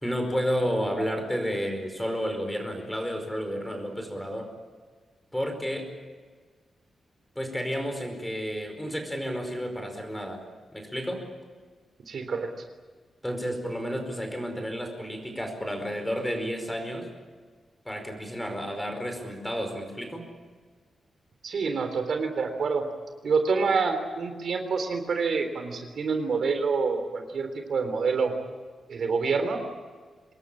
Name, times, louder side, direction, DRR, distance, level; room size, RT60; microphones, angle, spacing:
voice 1, 0.0-4.5 5.3-5.9 7.3-10.4 10.7-11.2 13.2-17.1 17.8-20.2, equal, 5° left, 5 dB, 4.9 m, -31 dB
voice 2, 12.1-12.5 21.4-22.8 23.2-28.3 28.9-29.6, right 4 dB, 60° right, 7 dB, 3.5 m, -27 dB
26.0 x 21.0 x 8.6 m, 1.5 s
wide cardioid pair, 160°, 0 cm